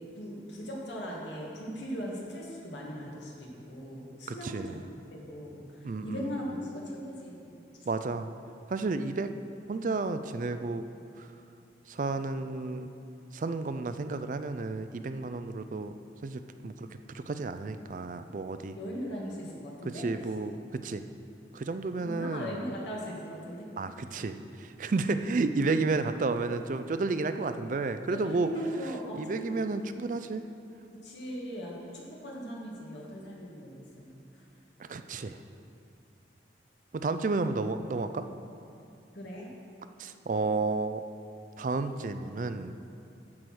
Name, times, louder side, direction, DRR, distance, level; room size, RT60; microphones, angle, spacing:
voice 1, 0.2-4.8 5.1-7.5 18.7-20.1 22.0-23.6 28.1-29.5 30.9-34.4 39.1-39.5, equal, 80° left, -3 dB, 2.2 m, -39 dB
voice 2, 4.3-4.8 5.8-6.3 7.9-8.3 8.7-9.3 9.7-10.8 11.2-11.3 11.9-12.9 13.3-15.9 16.2-18.8 19.9-21.0 21.5-22.7 23.8-28.5 29.1-30.4 34.8-35.4 36.9-38.3 40.0-41.0 41.6-42.7, right 3 dB, 45° right, 10 dB, 0.4 m, -32 dB
13.5 x 4.8 x 6.1 m, 2.6 s
head